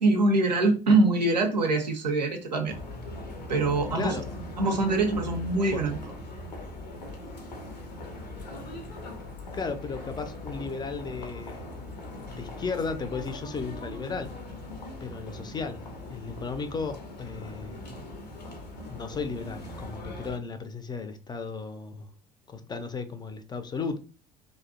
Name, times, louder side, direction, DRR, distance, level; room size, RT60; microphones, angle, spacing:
voice 1, 0.0-2.8 3.5-4.2 4.6-6.0, right 2 dB, 85° right, 0.5 m, -24 dB
sound 1, 2.7-20.4, left 1 dB, 80° left, 0.6 m, -40 dB
voice 2, 9.5-11.7 12.4-14.3 15.0-17.8 18.9-22.1 22.5-24.0, left 4 dB, 20° left, 0.4 m, -35 dB
2.5 x 2.1 x 2.4 m
figure-of-eight pair, 60°, 21 cm